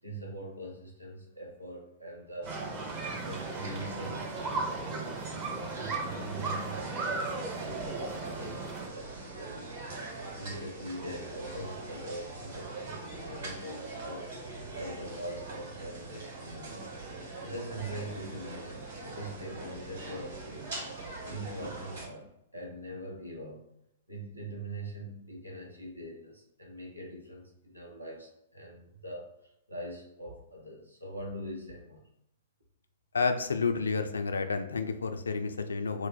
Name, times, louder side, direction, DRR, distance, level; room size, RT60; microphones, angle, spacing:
voice 1, 0.0-2.6 3.2-5.2 5.5-14.3 14.7-16.9 17.4-20.8 21.3-22.3 22.5-23.6 24.1-32.1, right 1 dB, 90° right, -1 dB, 0.8 m, -43 dB
sound 1, 2.4-22.1, right 2 dB, 60° right, 1.1 m, -42 dB
sound 2, 2.5-8.9, right 3 dB, 25° right, 0.5 m, -36 dB
voice 2, 33.1-36.1, left 4 dB, 70° left, 8 dB, 0.3 m, -30 dB
3.0 x 2.0 x 4.1 m, 0.79 s
figure-of-eight pair, 110°, 0 cm